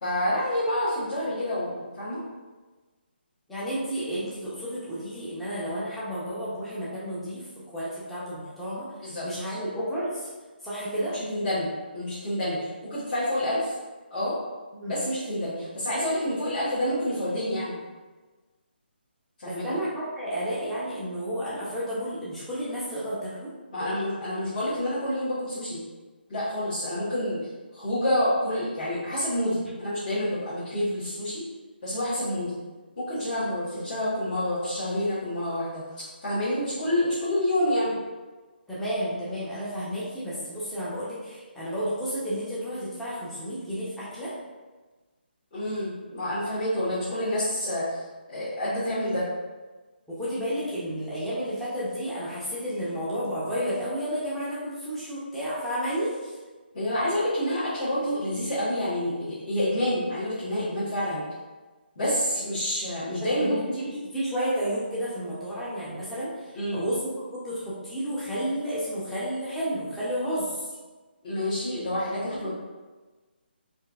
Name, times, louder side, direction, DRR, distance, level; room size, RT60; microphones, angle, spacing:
voice 1, 0.0-2.2 9.0-9.6 11.1-13.7 14.1-14.4 14.9-17.8 19.4-19.8 23.7-25.8 26.3-27.4 27.7-31.4 31.8-32.5 33.0-35.8 36.2-37.9 45.5-48.0 48.3-49.2 56.7-61.2 61.9-63.8 66.5-66.8 71.2-72.5, left 1 dB, 40° left, -14 dB, 1.4 m, -28 dB
voice 2, 3.5-7.5 7.7-10.3 10.6-11.1 14.7-15.0 19.5-23.5 38.7-44.3 50.1-56.3 63.2-67.0 67.3-70.7 72.2-72.5, equal, 5° left, -10 dB, 0.6 m, -31 dB
4.3 x 2.6 x 2.3 m, 1.3 s
hypercardioid pair, 160°, 6 cm